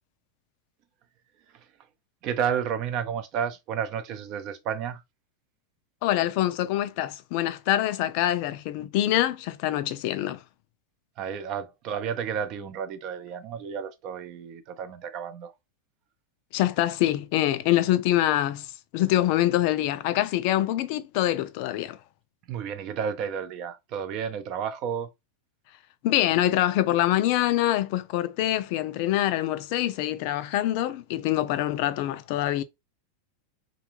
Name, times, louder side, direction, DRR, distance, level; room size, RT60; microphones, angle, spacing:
voice 1, 2.2-5.0 11.2-15.5 22.5-25.1, right 7 dB, 45° right, 0.6 m, -31 dB
voice 2, 6.0-10.4 16.5-18.7 18.9-22.0 26.0-32.6, left 13 dB, 60° left, 0.4 m, -25 dB
2.5 x 2.3 x 3.0 m
hypercardioid pair, 120°, 0 cm